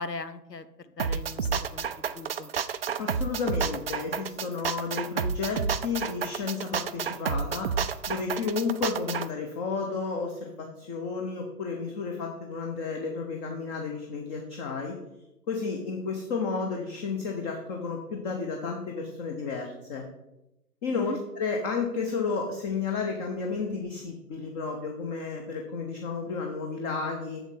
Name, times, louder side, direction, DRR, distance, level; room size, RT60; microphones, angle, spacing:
voice 1, 0.0-2.5 20.9-21.2, left 3 dB, 90° left, 12 dB, 1.0 m, -39 dB
sound 1, 1.0-9.3, right 6 dB, 40° right, 0.4 m, -30 dB
voice 2, 3.0-15.0 15.5-20.0 20.8-27.4, left 4 dB, 25° left, 3 dB, 1.0 m, -32 dB
7.5 x 7.2 x 5.6 m, 0.91 s
figure-of-eight pair, 125°, 48 cm